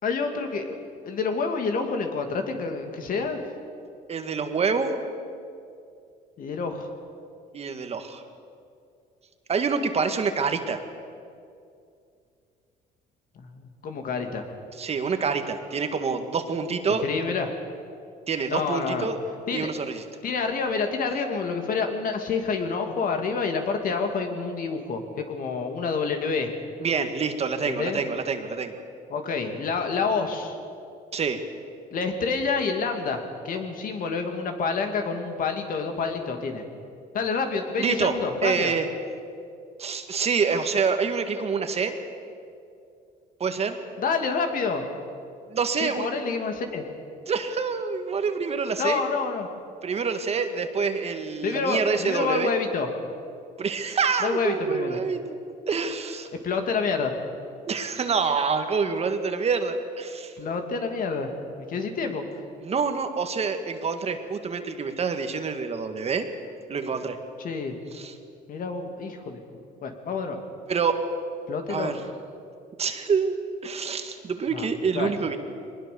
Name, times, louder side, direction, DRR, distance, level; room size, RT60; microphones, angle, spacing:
voice 1, 0.0-0.8 1.0-3.4 6.4-6.9 13.4-14.4 17.0-17.5 18.5-19.1 19.5-19.7 20.2-26.5 27.7-28.0 29.1-30.5 31.9-36.6 37.1-38.7 44.0-44.8 45.8-46.8 48.8-49.5 51.4-52.9 54.2-55.0 56.4-57.1 60.4-61.3 61.7-62.2 67.4-67.8 68.5-69.4 69.8-70.4 71.5-72.0 74.5-74.7 74.9-75.1, left 4 dB, 55° left, 5 dB, 2.7 m, -28 dB
voice 2, 4.1-5.0 7.5-8.2 9.5-10.8 14.8-17.0 18.3-19.2 19.5-20.0 26.8-28.7 31.1-31.4 37.8-38.1 38.4-38.8 39.8-42.0 43.4-43.8 45.5-46.1 47.3-49.0 49.8-52.5 53.6-55.4 55.7-56.3 57.7-60.3 62.6-66.3 66.7-67.2 67.9-68.1 70.7-71.0 71.7-72.0 72.8-75.4, right 5 dB, 40° right, 7 dB, 1.8 m, -26 dB
22.0 x 20.0 x 7.0 m, 2.4 s
cardioid pair, 110°, 17 cm